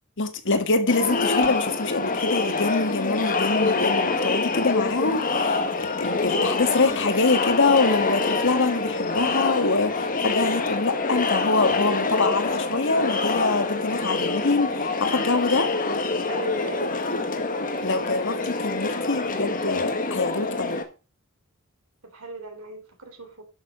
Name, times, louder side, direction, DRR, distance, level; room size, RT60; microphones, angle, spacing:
voice 1, 0.2-15.7 17.8-20.8, left 3 dB, 60° left, 1.8 m, -25 dB
Crowd, 0.9-20.8, left 3 dB, 40° left, 1.8 m, -25 dB
voice 2, 16.3-17.0 22.0-23.4, right 3 dB, 75° right, 3.6 m, -38 dB
11.0 x 6.9 x 5.2 m
head